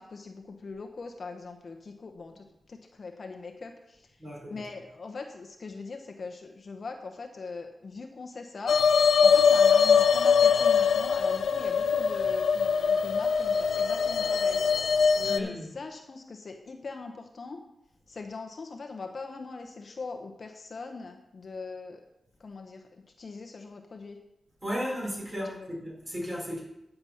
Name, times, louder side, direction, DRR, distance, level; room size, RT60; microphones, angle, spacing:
voice 1, 0.0-4.1 4.5-8.8 9.2-14.7 15.3-17.6 18.1-22.0 22.4-22.9 23.2-24.2 25.4-25.7, left 4 dB, 45° left, 4 dB, 1.0 m, -41 dB
voice 2, 4.2-4.6 15.1-15.7 24.6-26.6, equal, 25° right, -3 dB, 4.4 m, -35 dB
sound 1, 8.7-15.4, left 6 dB, 80° left, 0.6 m, -22 dB
9.9 x 6.9 x 5.7 m, 0.86 s
wide cardioid pair, 120°, 0 cm